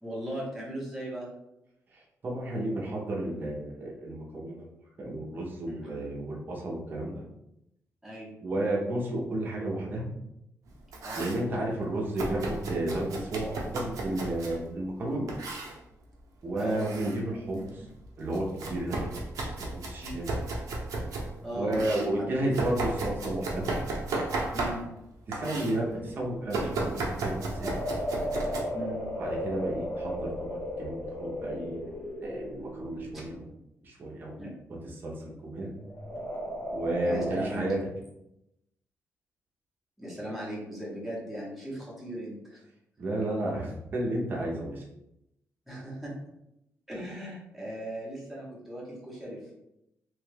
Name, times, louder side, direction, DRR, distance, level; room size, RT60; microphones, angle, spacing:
voice 1, 0.0-1.3 5.7-5.9 8.0-8.3 11.0-11.2 16.5-16.8 20.0-20.2 21.4-22.0 24.5-24.9 28.7-29.1 34.4-34.5 37.0-37.8 40.0-42.6 45.7-46.2 46.9-49.5, right 1 dB, ahead, -6 dB, 0.8 m, -38 dB
voice 2, 1.9-4.7 5.0-7.2 8.4-10.1 11.1-15.3 16.4-17.9 18.2-19.0 19.4-20.3 21.5-23.7 25.3-27.7 29.2-31.9 32.2-33.5 33.8-34.4 35.0-35.7 36.7-37.8 43.0-44.8, right 1 dB, 35° right, -3 dB, 0.7 m, -32 dB
Domestic sounds home sounds, 10.7-11.4 12.2-14.6 15.3-15.8 16.5-17.2 17.6-21.3 21.7-25.0 25.3-25.8 26.5-28.6, right 2 dB, 90° right, 0.8 m, -34 dB
sound 1, 27.4-33.4 35.8-37.4, equal, 60° left, 1.0 m, -35 dB
3.1 x 2.3 x 3.3 m, 0.85 s
wide cardioid pair, 170°, 6 cm